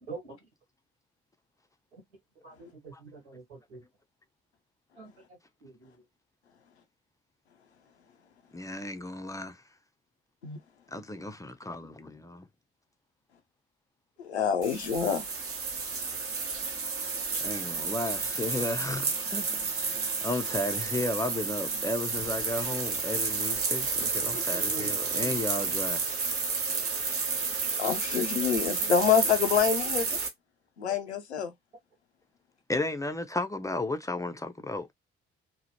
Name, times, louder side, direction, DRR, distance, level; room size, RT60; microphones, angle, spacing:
voice 1, 2.4-3.8 5.0-5.1 5.6-5.9 24.0-25.2, right 3 dB, 80° right, 1.4 m, -45 dB
voice 2, 8.5-9.6 10.9-12.4 17.4-19.4 19.8-26.0 32.7-34.9, left 2 dB, 10° left, 0.4 m, -34 dB
voice 3, 14.2-15.2 27.8-30.2 30.8-31.5, left 7 dB, 90° left, 0.5 m, -26 dB
sound 1, 14.6-30.3, right 4 dB, 45° right, 0.9 m, -31 dB
2.8 x 2.0 x 2.8 m
figure-of-eight pair, 45°, 32 cm